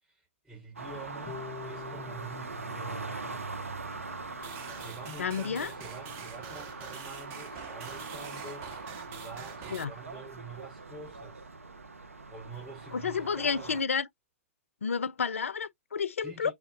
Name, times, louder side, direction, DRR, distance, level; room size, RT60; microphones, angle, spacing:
voice 1, 0.0-3.7 4.5-11.5 12.3-13.8 16.2-16.5, right 4 dB, 10° right, 3.5 m, -47 dB
sound 1, 0.8-13.8, right 3 dB, 85° right, 0.5 m, -42 dB
Harp, 1.3-7.3, left 6 dB, 30° left, 0.7 m, -49 dB
sound 2, 4.4-9.8, right 7 dB, 35° right, 0.7 m, -46 dB
voice 2, 5.2-5.7 9.7-9.9 12.9-14.1 14.8-16.5, left 6 dB, 75° left, 0.4 m, -30 dB
6.4 x 2.3 x 2.4 m
figure-of-eight pair, 110°, 7 cm